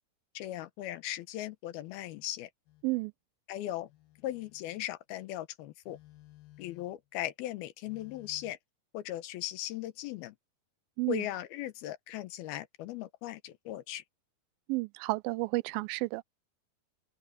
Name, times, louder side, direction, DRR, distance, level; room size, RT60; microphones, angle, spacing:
voice 1, 0.3-2.5 3.5-3.9 4.2-6.0 6.6-8.6 8.9-10.4 11.1-14.0, left 13 dB, 90° left, 3.0 m, -38 dB
Telephone, 2.7-2.9 3.8-4.9 5.8-7.1 7.8-8.5, left 16 dB, 75° left, 3.5 m, -57 dB
voice 2, 14.7-16.2, right 23 dB, 80° right, 2.3 m, -31 dB
open air
omnidirectional pair, 4.3 m